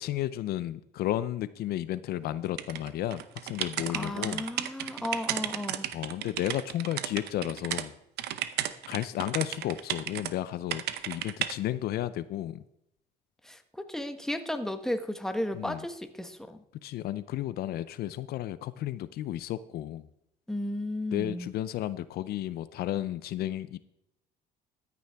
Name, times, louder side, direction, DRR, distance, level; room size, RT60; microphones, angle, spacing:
voice 1, 0.0-4.5 5.9-7.9 8.9-12.6 15.5-15.9 16.8-20.1 21.1-23.8, left 13 dB, 70° left, 15 dB, 0.5 m, -33 dB
sound 1, 2.6-7.9 8.2-10.3 10.7-11.5, right 12 dB, 75° right, 0.8 m, -34 dB
voice 2, 3.9-5.9 13.4-16.6 20.5-21.5, left 1 dB, 5° left, 7 dB, 1.1 m, -34 dB
14.0 x 9.3 x 3.5 m, 0.81 s
cardioid pair, 110°, 17 cm